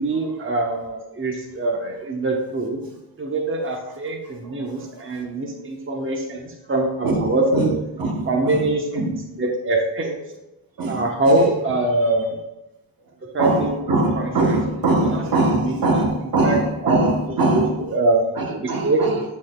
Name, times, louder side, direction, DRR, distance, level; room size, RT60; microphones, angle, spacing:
voice 1, 0.0-2.8 3.2-7.7 8.3-10.2 10.9-12.4 13.3-13.8 14.2-14.3 15.0-15.2 15.6-15.8 16.4-16.6 16.8-17.0 17.5-17.6 17.9-19.0, right 2 dB, 30° right, 1.0 m, -23 dB
voice 2, 7.0-9.2 10.8-11.5 13.4-17.8 18.4-19.2, right 2 dB, 55° right, 1.1 m, -22 dB
8.6 x 6.1 x 2.3 m
wide cardioid pair, 105°, 43 cm